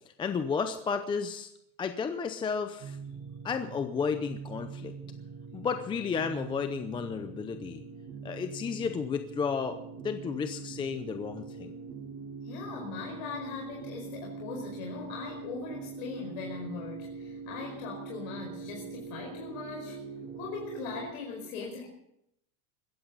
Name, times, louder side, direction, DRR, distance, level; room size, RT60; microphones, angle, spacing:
voice 1, 0.2-1.5 1.8-3.0 3.4-4.9 5.5-7.8 8.2-11.7, left 6 dB, 10° left, 8 dB, 0.6 m, -32 dB
sound 1, 2.8-21.1, right 5 dB, 40° right, 3.9 m, -43 dB
voice 2, 12.4-20.0 20.4-21.9, left 5 dB, 70° left, -1 dB, 5.1 m, -40 dB
21.0 x 15.0 x 4.0 m, 0.78 s
supercardioid pair, 155°, 44 cm